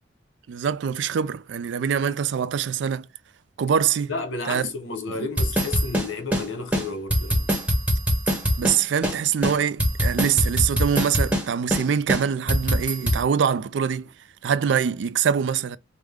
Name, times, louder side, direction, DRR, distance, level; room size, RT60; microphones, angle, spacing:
voice 1, 0.5-3.1 3.6-4.1 4.5-4.7 5.2-5.3 8.6-14.1 14.4-15.8, right 7 dB, 70° right, 0.3 m, -24 dB
voice 2, 4.1-7.5, left 3 dB, 85° left, 0.9 m, -32 dB
sound 1, 5.4-6.5 6.7-6.8 7.1-8.8 9.0-9.2 9.4-11.5 11.7-11.8 12.1-13.2, equal, 5° right, 1.0 m, -22 dB
4.7 x 2.1 x 3.6 m
head